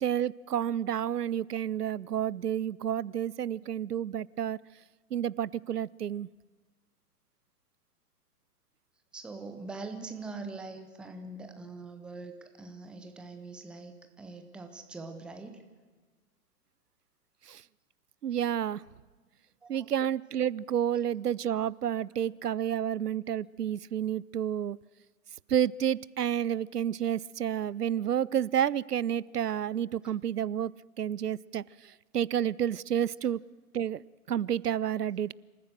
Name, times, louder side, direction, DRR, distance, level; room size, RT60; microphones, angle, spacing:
voice 1, 0.0-4.6 5.1-6.3 17.5-17.6 18.2-18.8 19.7-24.8 25.5-30.7 31.0-33.4 33.7-35.3, right 9 dB, 85° right, 23 dB, 0.5 m, -30 dB
voice 2, 9.1-15.6 19.6-19.9 30.0-30.1, right 3 dB, ahead, 7 dB, 0.6 m, -43 dB
26.5 x 14.5 x 7.7 m, 1.4 s
figure-of-eight pair, 120°, 46 cm